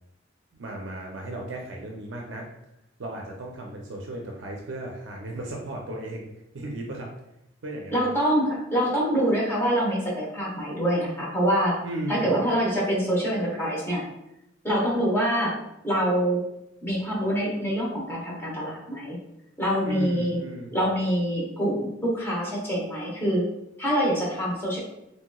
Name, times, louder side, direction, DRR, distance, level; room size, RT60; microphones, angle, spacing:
voice 1, 0.6-2.4 3.0-7.1 7.6-8.1 11.8-12.4 19.8-20.8, right 1 dB, 70° right, 0 dB, 0.5 m, -35 dB
voice 2, 7.9-11.8 12.1-14.0 14.6-15.5 15.8-16.4 16.8-19.2 19.6-20.4 20.7-23.5 23.8-24.8, equal, 10° left, -5 dB, 0.9 m, -25 dB
3.1 x 2.8 x 2.2 m, 0.84 s
head